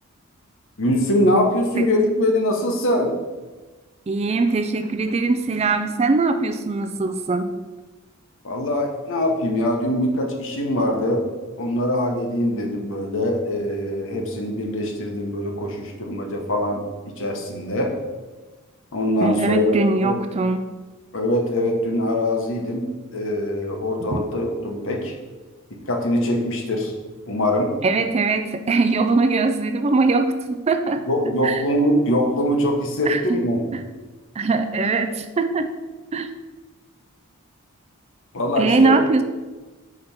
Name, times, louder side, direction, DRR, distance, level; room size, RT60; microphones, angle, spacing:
voice 1, 0.8-3.2 8.4-11.3 11.6-18.0 18.9-20.2 21.1-25.2 25.7-26.9 27.3-27.7 31.1-33.6 38.3-39.0, left 1 dB, 60° left, 3 dB, 1.0 m, -23 dB
voice 2, 4.1-7.5 19.2-20.7 24.1-24.2 27.8-31.0 31.4-31.6 33.1-33.2 34.4-35.7 36.1-36.3 38.6-39.2, right 3 dB, 30° right, 8 dB, 0.4 m, -21 dB
5.1 x 4.1 x 5.7 m, 1.2 s
head